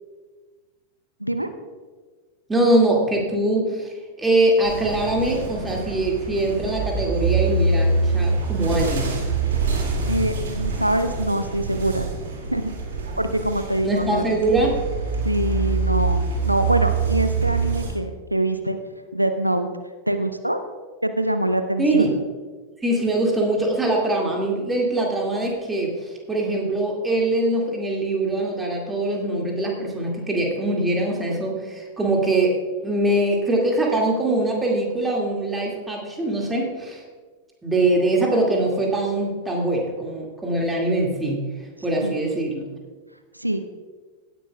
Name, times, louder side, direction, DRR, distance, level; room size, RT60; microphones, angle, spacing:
voice 1, 2.5-3.9 4.2-9.1 13.8-14.7 21.8-22.1 22.8-32.5 32.8-37.0 37.6-41.4 41.8-42.7, right 2 dB, 10° right, -1 dB, 2.1 m, -22 dB
sound 1, 4.6-17.9, right 4 dB, 60° right, 2.2 m, -25 dB
voice 2, 10.1-12.1 12.5-12.7 13.2-14.2 15.2-18.8 19.1-19.7 20.1-20.6 21.0-22.1 42.0-42.3 43.3-43.6, right 1 dB, 90° right, 8 dB, 0.5 m, -24 dB
17.0 x 10.0 x 2.3 m, 1.4 s
figure-of-eight pair, 90°, 0 cm